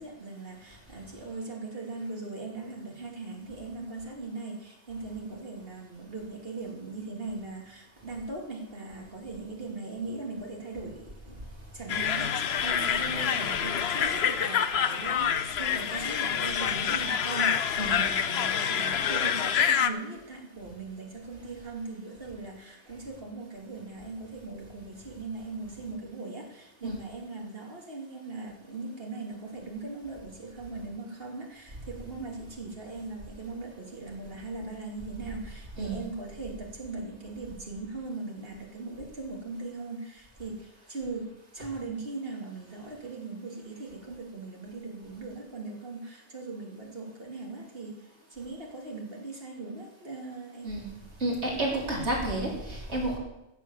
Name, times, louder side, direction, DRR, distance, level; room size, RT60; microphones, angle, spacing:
voice 1, 0.0-11.4 11.7-50.7, right 3 dB, 60° right, -1 dB, 3.1 m, -39 dB
sound 1, 11.9-19.9, left 8 dB, 70° left, 1.0 m, -27 dB
voice 2, 51.2-53.2, right 1 dB, 90° right, -2 dB, 3.6 m, -30 dB
15.0 x 7.4 x 7.3 m, 0.93 s
omnidirectional pair, 1.1 m